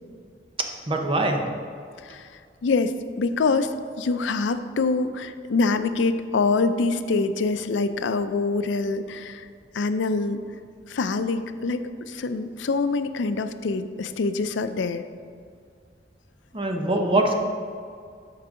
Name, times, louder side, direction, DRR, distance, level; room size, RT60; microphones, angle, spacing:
voice 1, 0.9-1.4 16.5-17.3, right 2 dB, 30° right, 3 dB, 0.8 m, -23 dB
voice 2, 2.6-9.5 9.7-10.4 10.9-15.0, left 3 dB, 90° left, 11 dB, 0.4 m, -25 dB
12.5 x 4.7 x 3.7 m, 2.2 s
head